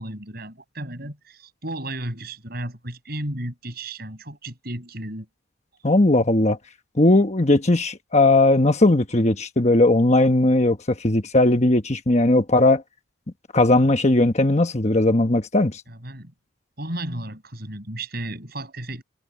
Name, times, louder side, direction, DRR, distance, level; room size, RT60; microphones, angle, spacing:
voice 1, 0.0-5.3 15.9-16.3 16.8-19.0, right 1 dB, 50° right, 6.7 m, -33 dB
voice 2, 5.8-6.6 7.0-12.8 13.5-15.8, left 2 dB, 35° left, 1.2 m, -18 dB
head